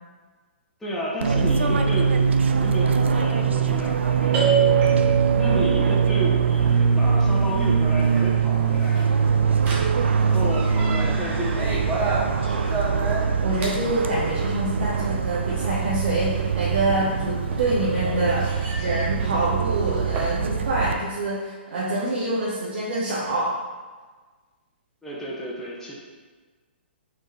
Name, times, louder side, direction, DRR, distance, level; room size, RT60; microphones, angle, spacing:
voice 1, 0.8-9.1 10.1-12.9 25.0-25.9, equal, 5° left, -6 dB, 0.8 m, -32 dB
Fixed-wing aircraft airplane, 1.2-20.9, right 6 dB, 80° right, 0.4 m, -22 dB
sound 1, 4.3-20.3, right 6 dB, 25° right, 0.9 m, -30 dB
voice 2, 13.4-23.5, right 1 dB, 65° right, -7 dB, 1.2 m, -26 dB
4.3 x 3.6 x 3.1 m, 1.4 s
hypercardioid pair, 135°, 6 cm